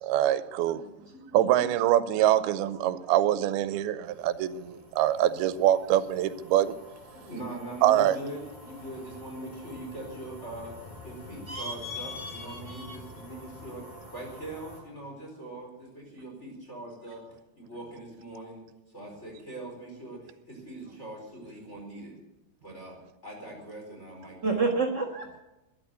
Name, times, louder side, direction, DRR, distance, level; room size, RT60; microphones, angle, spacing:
voice 1, 0.0-0.8 1.3-6.7 7.8-8.2, right 12 dB, 90° right, 13 dB, 2.6 m, -24 dB
voice 2, 0.9-1.4 2.8-3.0 7.1-13.8 14.1-17.2 17.5-18.6 18.9-22.1 22.6-23.0 23.2-24.7, right 1 dB, 15° left, -1 dB, 4.4 m, -42 dB
sound 1, 4.1-14.8, left 2 dB, 70° left, 9.6 m, -48 dB
voice 3, 11.5-13.0 24.4-25.4, right 3 dB, 55° right, 3 dB, 1.2 m, -31 dB
12.5 x 11.0 x 8.1 m, 0.97 s
omnidirectional pair, 4.4 m